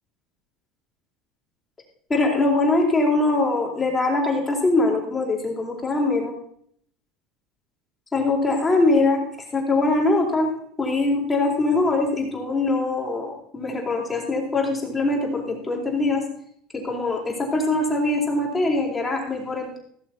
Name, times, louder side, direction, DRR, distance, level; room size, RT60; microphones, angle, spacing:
voice 1, 2.1-6.3 8.1-9.2 9.5-10.5 10.8-16.2 16.7-19.8, left 2 dB, 20° left, -1 dB, 4.2 m, -22 dB
16.0 x 6.8 x 5.9 m, 0.64 s
supercardioid pair, 110°, 0 cm